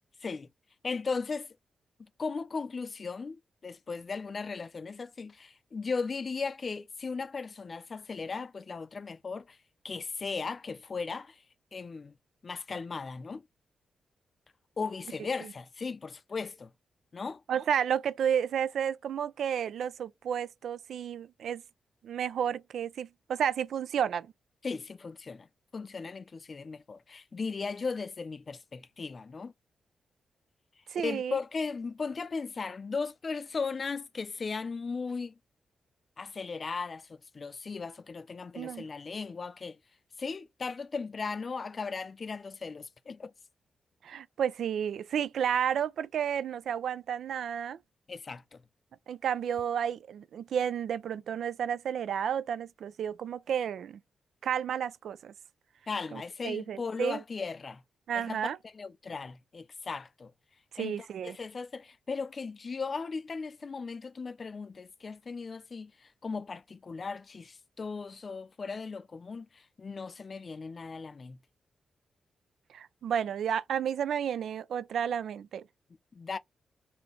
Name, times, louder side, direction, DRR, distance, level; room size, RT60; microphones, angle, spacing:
voice 1, 0.8-1.5 2.2-9.6 9.8-11.4 11.7-12.1 12.4-13.4 14.8-16.7 17.1-17.4 24.6-25.5 25.7-29.5 31.0-35.3 36.2-39.8 40.2-43.3 48.1-48.6 55.9-57.8 58.1-58.4 58.7-60.3 60.8-71.4 76.1-76.4, left 4 dB, 40° left, 0.4 m, -37 dB
voice 2, 17.5-21.6 22.0-24.3 30.9-31.4 38.6-38.9 44.0-47.8 49.1-54.0 54.4-55.3 56.1-57.2 58.1-58.6 60.7-61.4 72.7-75.6, right 8 dB, 80° right, 0.4 m, -31 dB
4.1 x 2.8 x 3.1 m
wide cardioid pair, 125°, 0 cm